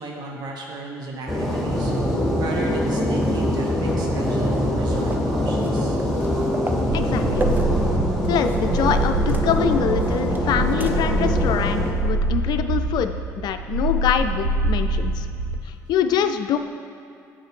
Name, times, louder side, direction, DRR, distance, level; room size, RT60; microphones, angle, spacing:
voice 1, 0.0-1.9 2.4-6.0, right 3 dB, 55° right, 0 dB, 1.1 m, -34 dB
sound 1, 1.3-11.9, equal, ahead, 1.5 m, -23 dB
sound 2, 4.2-8.8 9.1-11.2 11.6-11.7 14.2-14.3, right 2 dB, 20° right, 0.6 m, -36 dB
voice 2, 6.9-7.5 8.3-15.3 15.7-16.6, left 8 dB, 55° left, 8 dB, 0.3 m, -24 dB
sound 3, 6.9-15.6, right 2 dB, 75° right, 0.5 m, -25 dB
7.7 x 4.7 x 3.2 m, 2.6 s
hypercardioid pair, 55°, 9 cm